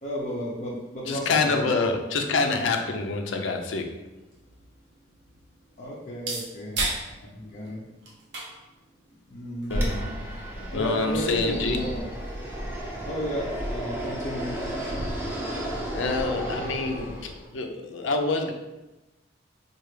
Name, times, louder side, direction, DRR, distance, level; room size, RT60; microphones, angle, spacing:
voice 1, 0.0-1.7 5.8-7.8 9.3-10.1 10.6-12.1 13.0-14.5, equal, 40° left, -4 dB, 0.6 m, -33 dB
voice 2, 1.1-3.9 9.7-10.1 10.7-11.8 15.0-15.1 15.9-18.5, left 3 dB, 90° left, 4 dB, 0.5 m, -27 dB
sound 1, 4.3-11.7, right 2 dB, 65° right, 0.8 m, -38 dB
Fixed-wing aircraft airplane, 9.7-17.5, equal, 10° right, 0.7 m, -32 dB
4.7 x 2.4 x 3.2 m, 1.0 s
head